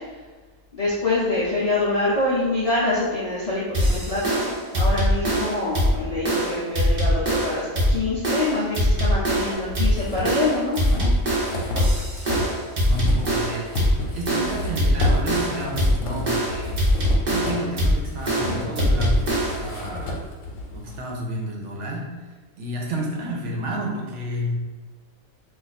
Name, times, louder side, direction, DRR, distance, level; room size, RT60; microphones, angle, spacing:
voice 1, 0.7-11.1, left 2 dB, 50° left, -8 dB, 0.4 m, -25 dB
sound 1, 3.7-19.7, equal, 45° right, 0.7 m, -22 dB
sound 2, 9.5-12.6 12.8-21.0, left 1 dB, 80° left, 1.0 m, -32 dB
voice 2, 12.8-13.7 14.0-16.8 17.3-20.2 20.7-22.1 22.6-24.6, equal, 70° right, -1 dB, 1.0 m, -30 dB
2.5 x 2.4 x 4.0 m, 1.3 s
omnidirectional pair, 1.4 m